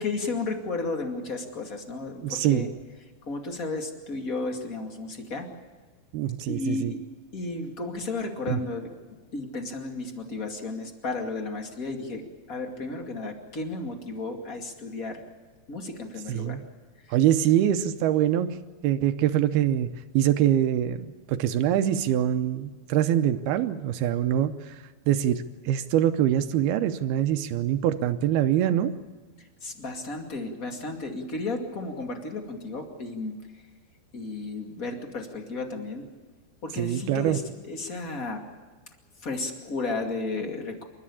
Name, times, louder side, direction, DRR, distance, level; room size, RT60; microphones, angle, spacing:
voice 1, 0.0-2.7 3.2-5.5 6.5-7.0 7.3-8.9 9.3-15.2 15.7-16.6 17.0-17.1 29.4-33.4 34.1-36.0 36.6-38.4 39.2-40.8, left 3 dB, 30° left, 3 dB, 1.6 m, -33 dB
voice 2, 2.2-2.7 6.1-6.9 8.5-8.6 16.3-16.6 17.1-18.6 18.8-19.9 20.1-28.9 36.8-37.4, right 11 dB, 80° right, 10 dB, 2.3 m, -24 dB
28.5 x 13.5 x 8.6 m, 1.4 s
omnidirectional pair, 5.3 m